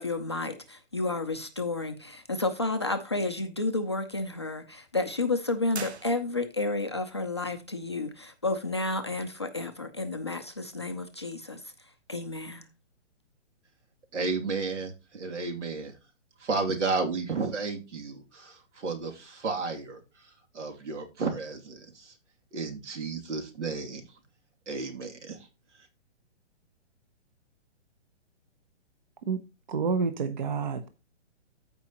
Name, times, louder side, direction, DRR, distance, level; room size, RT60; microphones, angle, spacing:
voice 1, 0.0-11.6 12.1-12.7, left 2 dB, 25° left, 0.4 m, -31 dB
sound 1, 5.7-6.7, right 6 dB, 65° right, 1.1 m, -41 dB
voice 2, 14.1-16.0 16.4-22.2 22.5-24.2 24.7-25.5 25.7-25.9, right 4 dB, 85° right, 2.7 m, -33 dB
voice 3, 29.7-30.9, right 5 dB, 40° right, 0.9 m, -28 dB
14.5 x 5.1 x 2.9 m
hypercardioid pair, 175°, 35 cm